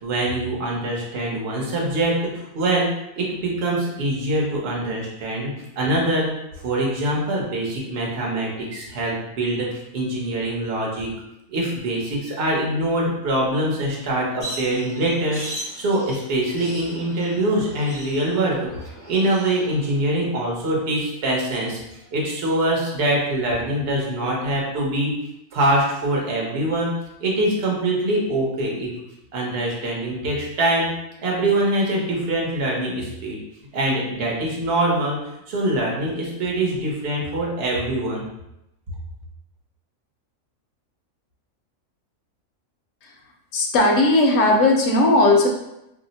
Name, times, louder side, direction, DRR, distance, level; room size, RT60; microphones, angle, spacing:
voice 1, 0.0-2.9 3.2-5.5 5.8-6.3 6.6-9.7 9.9-11.1 11.5-18.7 19.1-21.8 22.1-25.1 25.5-26.9 27.2-28.9 29.3-30.9 31.2-33.4 33.7-35.2 35.5-38.3, right 1 dB, 50° right, -3 dB, 0.9 m, -23 dB
sound 1, 14.4-20.0, right 1 dB, 15° right, 0.9 m, -38 dB
voice 2, 43.5-45.5, left 2 dB, 70° left, 1 dB, 0.9 m, -17 dB
2.7 x 2.0 x 3.9 m, 0.87 s
omnidirectional pair, 1.4 m